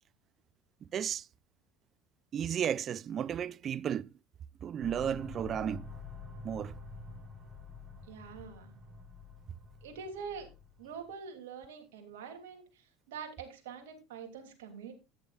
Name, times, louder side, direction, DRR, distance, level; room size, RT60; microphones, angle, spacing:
voice 1, 0.9-1.3 2.3-4.1 4.6-5.9 6.4-6.7, right 9 dB, 40° right, 0.5 m, -33 dB
sound 1, 4.8-11.1, left 3 dB, 20° right, 4.6 m, -48 dB
voice 2, 8.1-8.8 9.8-10.5 10.8-14.9, right 6 dB, 75° right, 3.0 m, -45 dB
14.0 x 10.0 x 2.5 m
hypercardioid pair, 75°, 0 cm